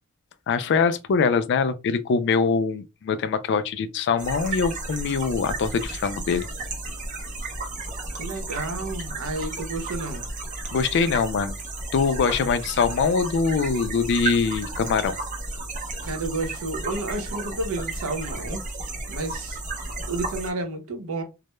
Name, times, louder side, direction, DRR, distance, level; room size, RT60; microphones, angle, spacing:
voice 1, 0.5-6.5 10.7-11.6 11.9-15.2, left 5 dB, 55° left, 0.3 m, -23 dB
sound 1, 4.2-20.5, right 2 dB, 40° right, 0.6 m, -33 dB
voice 2, 8.2-10.2 16.0-18.6 19.1-19.6 20.1-21.2, right 2 dB, 85° right, 0.7 m, -31 dB
2.2 x 2.0 x 2.9 m
head